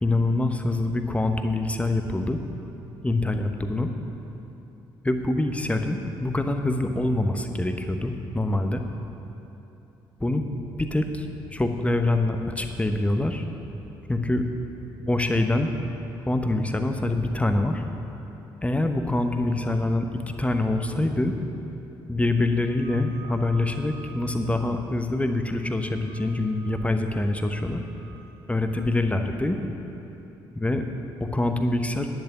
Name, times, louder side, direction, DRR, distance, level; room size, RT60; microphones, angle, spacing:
voice 1, 0.0-2.4 3.0-3.9 5.0-8.8 10.2-10.4 10.8-11.3 11.5-13.5 14.1-14.4 15.1-15.7 16.2-17.8 18.6-21.4 22.1-27.8 28.5-29.6 30.5-30.8 31.2-32.1, left 2 dB, 10° left, 6 dB, 1.0 m, -25 dB
sound 1, 10.4-16.0, right 1 dB, 35° right, 1.5 m, -48 dB
sound 2, 22.5-25.4 25.7-26.5 26.9-28.4, right 7 dB, 35° left, 2.1 m, -50 dB
10.0 x 6.6 x 9.0 m, 3.0 s
figure-of-eight pair, 40°, 12 cm